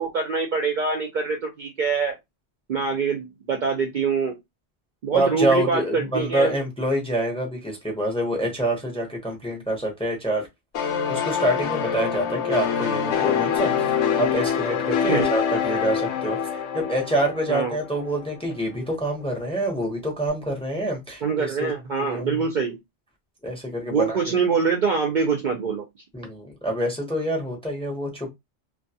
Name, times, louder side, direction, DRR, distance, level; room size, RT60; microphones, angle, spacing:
voice 1, 0.0-2.1 2.7-4.4 5.0-6.5 15.1-15.3 17.5-17.8 21.2-22.8 23.9-25.8, right 5 dB, 55° right, 0.5 m, -24 dB
voice 2, 5.1-10.5 11.1-21.7 21.9-22.4 23.4-24.2 26.1-28.3, right 1 dB, 5° left, 0.6 m, -26 dB
sound 1, 10.7-18.2, left 8 dB, 85° left, 0.9 m, -25 dB
2.3 x 2.2 x 2.6 m
omnidirectional pair, 1.1 m